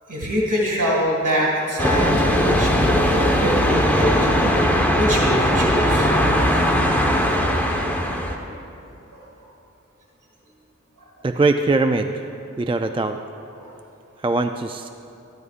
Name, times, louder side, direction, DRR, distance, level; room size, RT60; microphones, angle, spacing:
voice 1, 0.1-4.1 4.6-6.2 9.1-9.2 11.0-11.3 12.7-12.9 13.6-13.7, equal, 80° right, -4 dB, 2.0 m, -25 dB
sound 1, 1.8-8.4, equal, 5° left, 1.1 m, -19 dB
voice 2, 11.2-12.2 12.6-13.2 14.2-14.9, right 3 dB, 20° right, 6 dB, 0.3 m, -21 dB
13.5 x 12.5 x 2.5 m, 2.8 s
wide cardioid pair, 45°, 30 cm